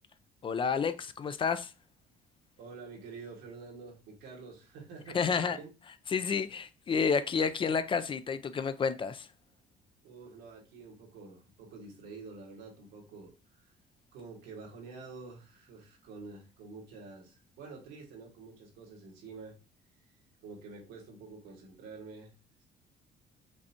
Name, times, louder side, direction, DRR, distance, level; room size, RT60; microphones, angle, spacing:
voice 1, 0.4-1.7 5.1-5.6 6.1-9.3, left 6 dB, 30° left, 0.4 m, -30 dB
voice 2, 2.6-5.7 10.0-13.7 14.1-19.5 20.4-22.3, right 4 dB, 90° right, 1.7 m, -48 dB
5.2 x 3.3 x 2.8 m
cardioid pair, 110°, 17 cm